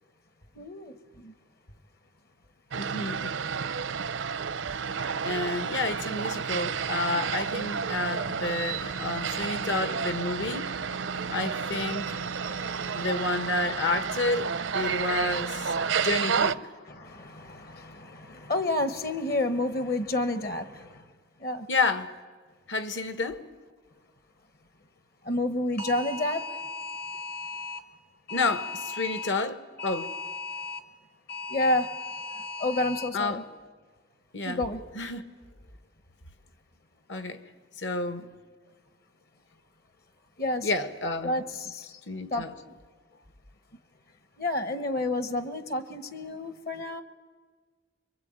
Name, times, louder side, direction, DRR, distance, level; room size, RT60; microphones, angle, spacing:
voice 1, 0.5-1.3 8.7-13.6 14.8-15.5 15.9-16.1 16.8-21.1 21.4-21.7 25.2-27.8 28.3-29.3 29.8-30.8 31.3-33.4 34.4-34.8 40.4-40.7 41.2-42.0 42.3-42.7 44.4-47.0, left 2 dB, 50° left, 1.1 m, -32 dB
voice 2, 2.7-3.3 5.2-10.7 11.3-12.2 12.9-16.6 21.7-22.1 22.7-23.5 28.3-30.1 33.1-33.4 34.3-34.6 34.9-35.3 37.1-37.4 37.8-38.3 40.6-41.4 42.1-42.5, left 3 dB, 70° left, 1.6 m, -30 dB
sound 1, 2.7-16.5, right 6 dB, 80° right, 0.7 m, -31 dB
26.0 x 23.0 x 8.9 m
head